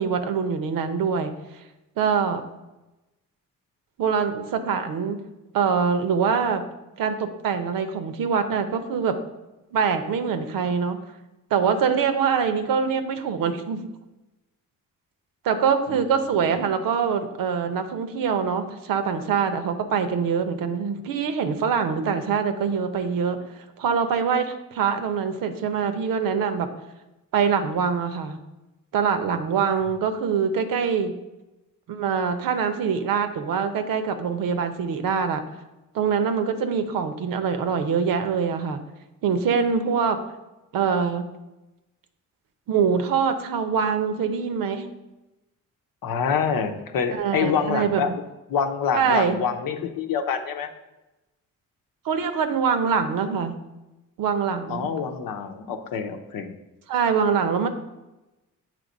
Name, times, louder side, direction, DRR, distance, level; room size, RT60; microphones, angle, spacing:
voice 1, 0.0-1.3 2.0-2.4 4.0-5.2 5.5-6.6 7.0-9.2 9.7-11.0 11.5-13.8 15.4-23.4 23.8-26.7 27.3-28.4 28.9-31.1 31.9-35.4 35.9-38.8 39.2-40.2 40.7-41.3 42.7-44.9 47.2-48.1 48.9-49.5 52.0-53.5 54.2-54.9 56.9-57.7, right 6 dB, 75° right, 8 dB, 0.8 m, -24 dB
voice 2, 46.0-48.1 48.5-50.7 54.7-56.5, left 6 dB, 75° left, 7 dB, 0.8 m, -26 dB
7.5 x 3.2 x 5.2 m, 1.0 s
cardioid pair, 70°, 34 cm